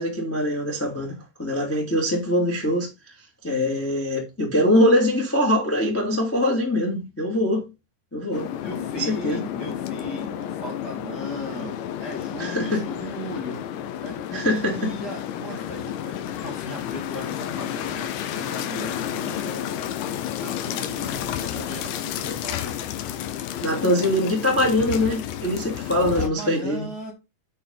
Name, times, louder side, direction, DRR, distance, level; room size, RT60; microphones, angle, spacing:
voice 1, 0.0-2.9 3.4-7.6 8.1-8.5 8.9-9.4 12.4-12.8 14.3-14.9 23.6-26.9, left 1 dB, 5° left, 1.2 m, -23 dB
sound 1, 8.3-26.3, left 10 dB, 80° left, 3.1 m, -31 dB
voice 2, 8.6-13.6 14.0-19.9 20.4-22.8 26.2-27.1, right 1 dB, 30° right, 1.9 m, -37 dB
8.6 x 4.5 x 5.7 m
omnidirectional pair, 5.4 m